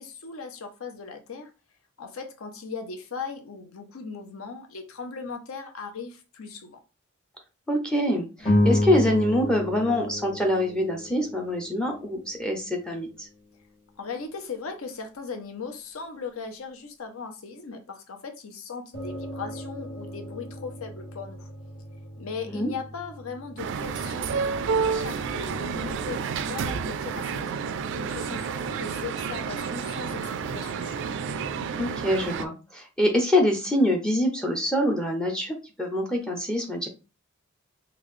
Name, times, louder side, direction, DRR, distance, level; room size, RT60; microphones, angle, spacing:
voice 1, 0.0-1.5 2.0-6.8 14.0-21.5 22.2-27.6 27.9-31.0, left 5 dB, 70° left, 0.7 m, -38 dB
voice 2, 7.7-13.3 22.5-22.7 31.8-36.9, left 1 dB, 5° left, 0.5 m, -25 dB
sound 1, 8.4-12.9, left 1 dB, 30° left, 1.7 m, -28 dB
sound 2, 18.9-28.1, equal, 85° left, 1.1 m, -43 dB
sound 3, 23.6-32.5, right 6 dB, 55° right, 0.3 m, -30 dB
3.7 x 2.3 x 3.1 m
head